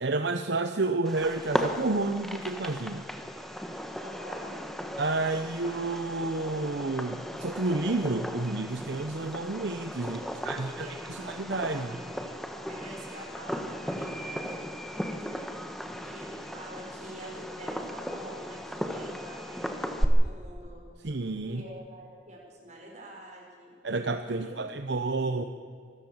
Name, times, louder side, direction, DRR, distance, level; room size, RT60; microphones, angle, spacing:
voice 1, 0.0-3.0 5.0-10.2 10.4-12.0 21.0-21.6 23.8-25.4, right 3 dB, 70° right, 7 dB, 0.9 m, -30 dB
Fireworks, 1.1-20.1, equal, ahead, 1.3 m, -36 dB
voice 2, 4.0-4.6 10.0-11.2 12.7-15.5 16.0-20.8 21.4-23.7 24.3-24.6, right 1 dB, 40° right, -1 dB, 6.0 m, -46 dB
25.5 x 14.0 x 7.4 m, 2.2 s
head